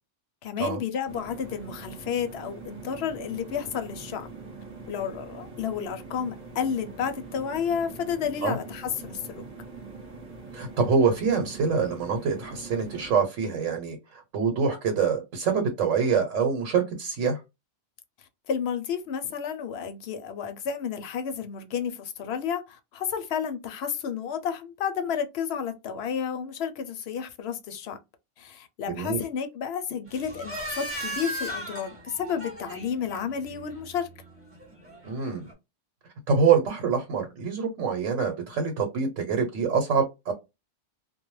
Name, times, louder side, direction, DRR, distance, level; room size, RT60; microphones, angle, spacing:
voice 1, 0.4-4.3 4.9-9.5 18.5-28.0 28.4-34.1, left 7 dB, 65° left, 0.7 m, -31 dB
sound 1, 1.0-13.1, right 4 dB, 40° right, 0.8 m, -43 dB
voice 2, 10.5-17.4 28.9-29.2 35.0-35.5 36.3-40.3, right 5 dB, 85° right, 1.1 m, -25 dB
sound 2, 30.1-35.5, right 1 dB, 10° right, 1.0 m, -38 dB
2.2 x 2.1 x 3.0 m
omnidirectional pair, 1.3 m